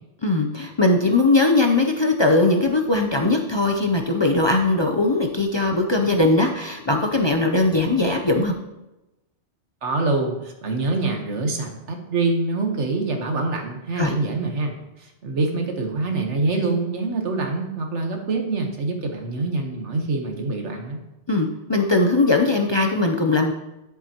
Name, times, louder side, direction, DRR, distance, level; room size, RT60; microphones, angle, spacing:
voice 1, 0.2-8.6 14.0-14.1 21.3-23.5, left 2 dB, 35° left, 2 dB, 0.5 m, -20 dB
voice 2, 9.8-21.0, right 3 dB, 90° right, 3 dB, 1.6 m, -25 dB
11.0 x 7.4 x 2.9 m, 0.96 s
omnidirectional pair, 1.2 m